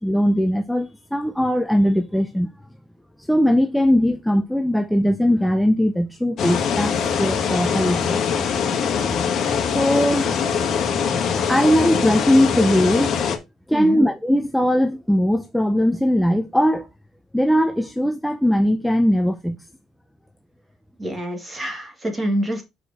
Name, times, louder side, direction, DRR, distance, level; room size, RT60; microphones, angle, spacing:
voice 1, 0.0-2.5 3.2-8.2 9.7-10.5 11.4-13.2 13.7-16.9 17.3-19.6, equal, 5° left, 0.5 m, -20 dB
sound 1, 6.4-13.4, left 6 dB, 50° left, 1.6 m, -22 dB
voice 2, 13.7-14.0 21.0-22.6, right 1 dB, 15° right, 2.0 m, -26 dB
5.9 x 4.9 x 4.9 m
cardioid pair, 150°, 0 cm